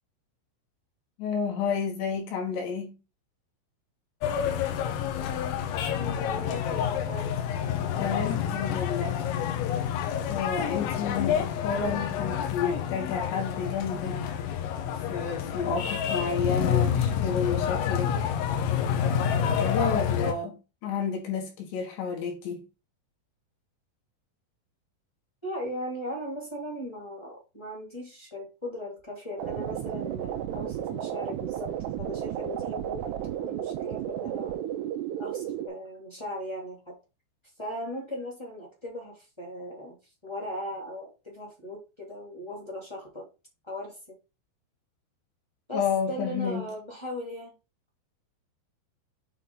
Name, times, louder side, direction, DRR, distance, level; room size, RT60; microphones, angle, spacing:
voice 1, 1.2-3.0 8.0-9.2 10.3-14.2 15.1-18.1 19.0-22.6 45.7-46.7, left 6 dB, 65° left, 3.3 m, -31 dB
sound 1, 4.2-20.3, left 8 dB, 85° left, 3.8 m, -28 dB
voice 2, 6.0-7.3 11.8-12.1 25.4-34.5 35.1-36.9 37.6-40.0 40.2-43.3 43.6-44.2 45.7-47.5, left 1 dB, 15° left, 1.0 m, -38 dB
sound 2, 29.4-35.7, right 11 dB, 90° right, 2.4 m, -33 dB
9.1 x 4.1 x 3.8 m
omnidirectional pair, 5.8 m